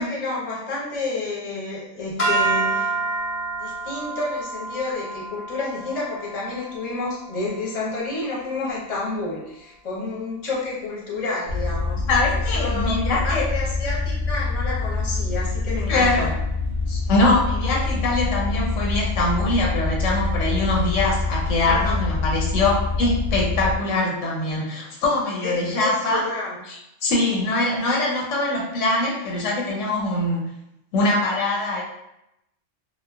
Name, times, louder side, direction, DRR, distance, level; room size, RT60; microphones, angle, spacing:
voice 1, 0.0-2.9 3.6-12.0 12.5-12.9 13.2-16.3 21.6-22.2 25.4-26.6, left 2 dB, 35° left, -5 dB, 0.7 m, -30 dB
sound 1, 2.2-8.5, right 3 dB, 60° left, 0.3 m, -29 dB
sound 2, 11.5-23.8, left 3 dB, 55° right, 0.5 m, -25 dB
voice 2, 12.1-13.4 15.9-16.3 16.9-26.2 26.7-30.5 30.9-31.8, left 2 dB, 80° left, -1 dB, 1.0 m, -23 dB
3.0 x 2.0 x 2.3 m, 0.84 s
omnidirectional pair, 1.3 m